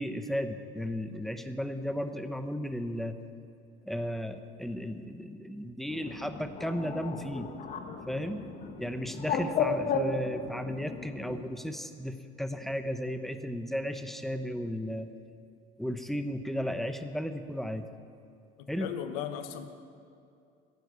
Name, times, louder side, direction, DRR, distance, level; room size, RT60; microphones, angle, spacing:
voice 1, 0.0-3.2 3.8-7.5 8.1-8.4 8.8-15.1 15.8-17.9 18.7-18.9, equal, ahead, 8 dB, 1.0 m, -34 dB
Bird, 5.9-11.4, left 5 dB, 45° left, 1.4 m, -34 dB
voice 2, 18.6-19.7, left 9 dB, 90° left, 9 dB, 1.2 m, -37 dB
15.0 x 11.0 x 8.2 m, 2.5 s
supercardioid pair, 110°, 18 cm